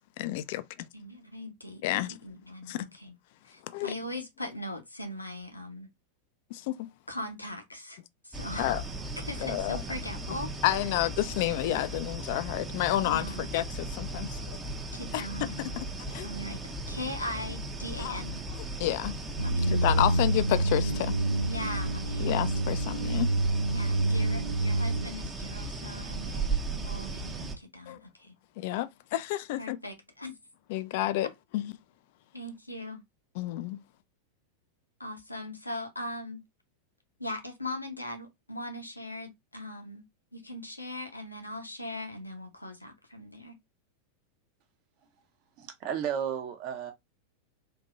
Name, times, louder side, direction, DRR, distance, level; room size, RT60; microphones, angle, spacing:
voice 1, 0.0-0.9 1.8-2.1 2.7-2.8 3.7-3.9 6.5-6.9 8.6-8.8 9.4-9.8 10.6-13.3 13.5-14.6 15.1-15.3 15.8-16.3 18.0-18.2 18.8-19.1 19.7-21.1 22.2-23.3 27.9-28.0 28.6-29.8 30.7-31.7 33.4-33.8, left 15 dB, 50° left, 0.4 m, -30 dB
voice 2, 0.9-3.2 3.4-5.9 7.1-8.0 8.2-8.8 9.2-10.5 13.0-13.5 14.9-15.8 16.2-16.6 16.9-18.5 19.4-19.7 20.0-20.2 21.5-22.4 23.7-28.3 29.6-30.3 32.3-33.0 35.0-36.4 37.2-40.0 40.3-43.5, left 1 dB, 85° left, 0.9 m, -40 dB
sound 1, 8.3-27.6, right 2 dB, 15° right, 0.7 m, -37 dB
sound 2, 19.4-25.1, right 2 dB, 80° right, 0.4 m, -28 dB
voice 3, 45.6-46.9, right 8 dB, 40° right, 0.9 m, -33 dB
3.8 x 2.7 x 2.5 m
figure-of-eight pair, 90°, 0 cm